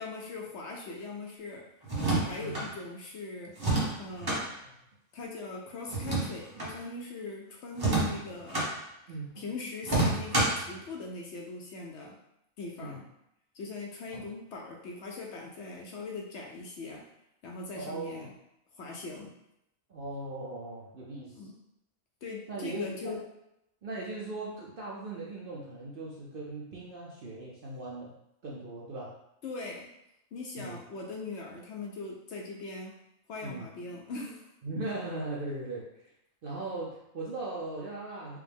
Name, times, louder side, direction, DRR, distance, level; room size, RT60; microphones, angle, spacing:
voice 1, 0.0-1.6 2.2-3.5 4.0-4.5 5.1-8.6 9.4-12.2 12.6-13.1 13.5-17.0 17.4-18.3 18.8-19.3 21.3-21.5 22.2-23.2 29.4-29.9 30.3-32.9 33.3-34.5, left 3 dB, 65° left, -1 dB, 0.8 m, -40 dB
sound 1, 1.8-2.7 3.6-4.4 5.9-6.7 7.7-8.7 9.8-10.7, right 2 dB, 20° right, 0.8 m, -28 dB
voice 2, 2.3-2.6 4.6-4.7 9.1-9.4 12.8-13.0 14.1-14.3 17.8-18.3 19.9-21.5 22.5-23.2 23.8-28.1 28.4-29.1 30.6-30.8 33.4-33.7 34.6-36.0 36.4-38.4, right 2 dB, 55° right, -5 dB, 0.6 m, -39 dB
4.8 x 2.1 x 3.4 m, 0.83 s
omnidirectional pair, 1.5 m